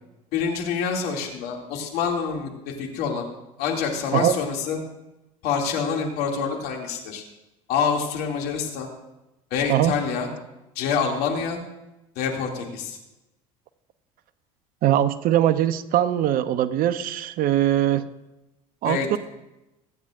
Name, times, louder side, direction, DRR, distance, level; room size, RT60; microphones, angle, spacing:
voice 1, 0.3-3.3 3.6-4.8 5.4-7.2 7.7-8.9 9.5-10.3 10.8-11.6 12.2-13.0 18.8-19.2, left 6 dB, 60° left, 1 dB, 2.5 m, -26 dB
voice 2, 14.8-18.0 18.8-19.2, right 12 dB, 55° right, 13 dB, 0.8 m, -21 dB
23.5 x 9.0 x 2.5 m, 0.97 s
hypercardioid pair, 70°, 18 cm